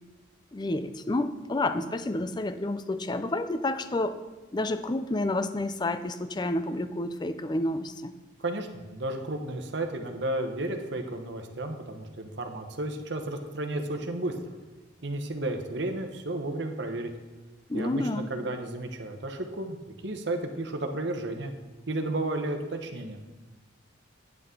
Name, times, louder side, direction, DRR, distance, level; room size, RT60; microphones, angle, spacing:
voice 1, 0.5-4.2 4.5-8.1 17.7-18.3, left 2 dB, 20° left, 11 dB, 0.4 m, -29 dB
voice 2, 8.4-14.3 15.0-17.1 17.7-21.5 21.9-23.2, right 2 dB, 60° right, 5 dB, 0.9 m, -33 dB
9.3 x 8.1 x 3.7 m, 1.2 s
head